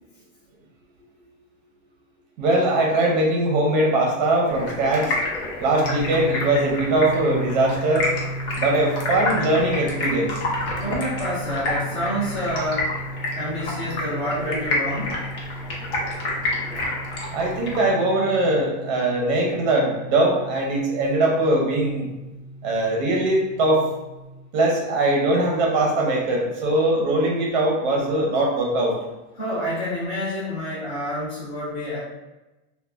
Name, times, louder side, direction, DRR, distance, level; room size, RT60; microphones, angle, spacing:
voice 1, 2.4-5.2 5.6-8.1 8.5-10.3 17.3-22.1 22.6-23.8 24.5-29.0, right 1 dB, 35° right, -1 dB, 0.6 m, -21 dB
Stream, 4.5-17.9, left 2 dB, 50° left, 0.7 m, -29 dB
sound 1, 5.7-24.4, right 1 dB, 90° left, 0.9 m, -35 dB
voice 2, 10.8-12.9 13.3-15.2 29.3-32.0, equal, 15° left, -11 dB, 0.3 m, -28 dB
3.2 x 2.2 x 2.3 m, 1.0 s
supercardioid pair, 175°, 39 cm